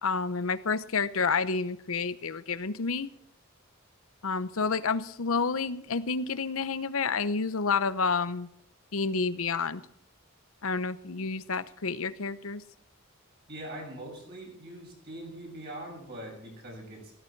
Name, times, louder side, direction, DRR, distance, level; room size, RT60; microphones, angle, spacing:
voice 1, 0.0-3.1 4.2-8.5 8.9-9.8 10.6-12.6, left 4 dB, 80° left, 0.8 m, -29 dB
voice 2, 13.5-17.1, right 1 dB, 50° right, 7.2 m, -42 dB
16.5 x 14.0 x 4.6 m
head